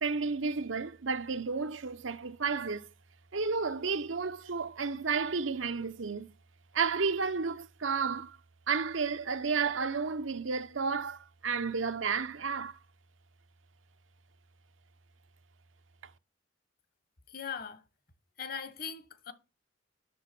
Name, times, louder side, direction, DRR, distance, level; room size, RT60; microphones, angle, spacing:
voice 1, 0.0-2.9 3.3-6.3 6.7-8.4 8.7-12.8, right 5 dB, 90° right, 0.9 m, -32 dB
voice 2, 17.3-17.8 18.4-19.3, left 6 dB, 50° left, 1.2 m, -40 dB
10.5 x 6.8 x 6.0 m
head